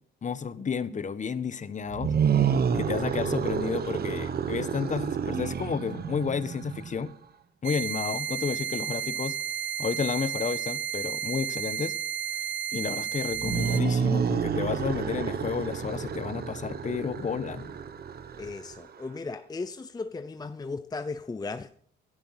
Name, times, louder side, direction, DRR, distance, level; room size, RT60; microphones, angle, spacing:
voice 1, 0.2-2.1 2.7-7.1 7.6-9.4 9.8-11.9 12.7-17.7, left 6 dB, 40° left, 1.2 m, -31 dB
sound 1, 1.9-7.1 13.3-19.0, right 7 dB, 50° right, 1.3 m, -29 dB
sound 2, 7.6-13.8, right 10 dB, 75° right, 1.3 m, -32 dB
voice 2, 18.4-21.7, left 3 dB, 20° left, 0.6 m, -36 dB
17.5 x 11.5 x 5.9 m
cardioid pair, 90°, 20 cm